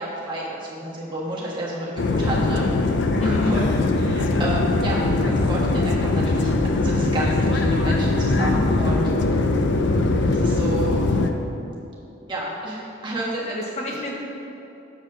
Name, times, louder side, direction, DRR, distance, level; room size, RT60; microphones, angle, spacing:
voice 1, 0.0-2.7 3.2-3.6 3.9-9.1 10.3-11.0 12.3-13.9, right 1 dB, 25° right, -5 dB, 1.4 m, -30 dB
sound 1, 2.0-11.3, left 2 dB, 60° left, 0.5 m, -21 dB
voice 2, 3.2-3.5 13.4-14.2, left 2 dB, 35° left, -2 dB, 0.8 m, -28 dB
7.3 x 4.3 x 6.0 m, 2.9 s
head